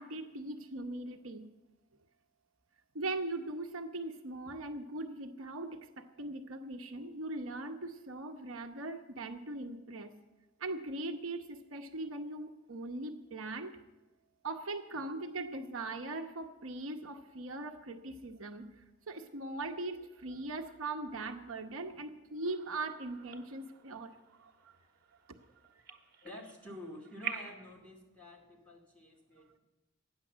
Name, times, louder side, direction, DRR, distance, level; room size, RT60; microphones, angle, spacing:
voice 1, 0.0-1.5 2.9-10.1 10.6-13.8 14.4-24.8 25.3-25.4, right 2 dB, 75° right, 5 dB, 0.9 m, -40 dB
sound 1, 22.4-27.7, right 6 dB, 50° right, 1.5 m, -47 dB
voice 2, 25.9-29.6, left 1 dB, 5° left, -4 dB, 2.4 m, -49 dB
12.5 x 9.7 x 7.3 m, 1.1 s
head